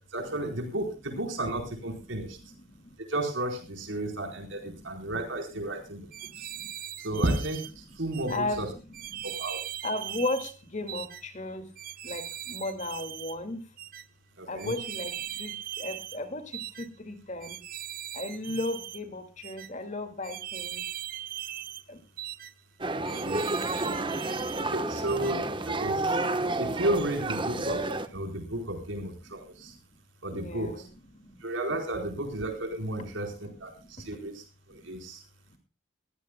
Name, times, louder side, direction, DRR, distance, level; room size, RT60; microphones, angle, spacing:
voice 1, 0.1-2.4 3.1-6.0 6.4-6.5 7.0-8.7 9.2-9.6 14.4-14.7 23.2-23.4 23.8-24.0 24.6-25.4 25.7-26.2 26.6-27.8 28.1-29.7 30.2-30.9 31.4-35.2, right 1 dB, 85° right, 3 dB, 4.4 m, -33 dB
voice 2, 2.1-3.0 4.0-4.1 4.5-4.7 5.9-6.7 7.9-8.7 9.1-9.3 9.8-11.7 12.0-13.7 14.5-17.6 18.1-20.9 21.9-22.1 22.8-25.1 28.2-28.4 29.3-29.7 30.3-31.4 33.8-34.2 34.7-34.9, left 2 dB, 40° left, 8 dB, 2.2 m, -37 dB
sound 1, 6.1-7.7 8.1-8.4 8.9-10.5 10.9-11.2 11.8-13.4 13.8-14.0 14.6-16.2 16.5-16.9 17.4-19.0 19.4-19.7 20.2-21.8 22.2-22.5 23.0-24.6 25.1-25.3, right 12 dB, 50° right, 0.8 m, -39 dB
sound 2, 22.8-28.1, right 2 dB, 25° right, 1.1 m, -30 dB
22.5 x 16.0 x 2.2 m, 0.33 s
head